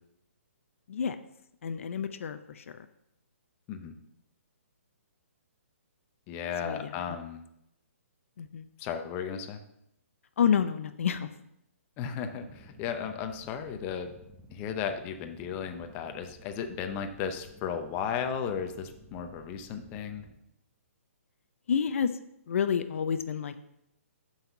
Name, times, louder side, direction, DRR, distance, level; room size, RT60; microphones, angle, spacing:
voice 1, 1.6-2.6 6.6-6.9 8.4-8.7 10.4-11.3 21.7-22.1 22.5-23.6, left 7 dB, 60° left, 10 dB, 0.6 m, -29 dB
voice 2, 6.3-7.4 8.8-9.6 12.0-14.1 14.5-20.2, left 7 dB, 25° left, 6 dB, 0.7 m, -35 dB
sound 1, 12.3-20.3, right 1 dB, ahead, 1.1 m, -55 dB
5.8 x 5.7 x 6.8 m, 0.79 s
hypercardioid pair, 150°, 8 cm